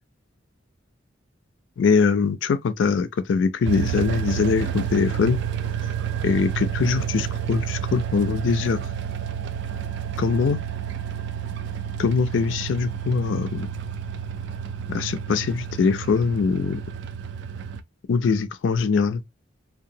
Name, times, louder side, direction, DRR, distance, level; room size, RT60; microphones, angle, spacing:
voice 1, 1.8-5.4 6.2-8.8 10.2-10.6 12.0-13.7 14.9-16.8 18.1-19.2, left 5 dB, 80° left, 0.4 m, -22 dB
sound 1, 3.7-17.8, right 9 dB, 65° right, 0.3 m, -30 dB
2.9 x 2.2 x 2.6 m
head